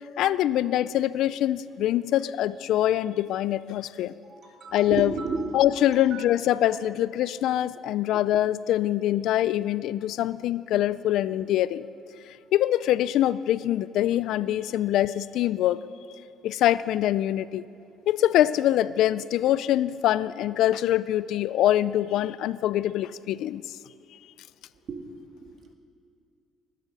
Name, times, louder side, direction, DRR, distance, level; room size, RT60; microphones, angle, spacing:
voice 1, 0.2-4.1 4.7-5.1 5.5-11.8 12.5-15.8 16.4-17.6 18.1-23.6, left 12 dB, 75° left, 17 dB, 0.4 m, -24 dB
voice 2, 4.2-5.6 6.1-6.6 24.9-25.0 25.4-25.7, right 4 dB, 45° right, 3 dB, 2.0 m, -34 dB
19.5 x 10.5 x 5.4 m, 2.6 s
cardioid pair, 95°, 0 cm